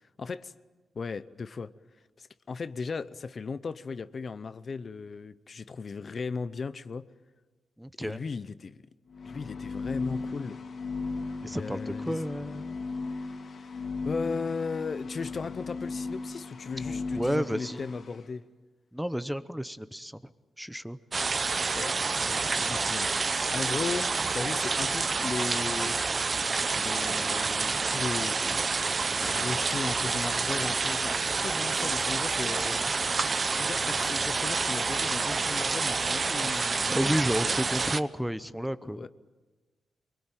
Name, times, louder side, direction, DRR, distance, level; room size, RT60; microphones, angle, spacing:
voice 1, 0.2-0.5 0.9-1.7 2.2-7.1 8.0-8.8 9.2-10.6 11.5-12.2 13.1-18.5 21.7-23.1 23.5-26.0 26.7-33.1 33.5-37.6 38.8-39.1, left 4 dB, 45° left, 14 dB, 0.8 m, -37 dB
voice 2, 7.8-8.2 11.4-12.8 16.8-17.9 18.9-20.2 20.6-21.0 36.9-39.1, equal, ahead, 13 dB, 0.8 m, -31 dB
sound 1, 9.1-18.2, left 3 dB, 60° left, 3.0 m, -37 dB
sound 2, 21.1-38.0, right 4 dB, 35° right, 0.8 m, -28 dB
24.5 x 23.0 x 9.1 m, 1.3 s
cardioid pair, 110°, 0 cm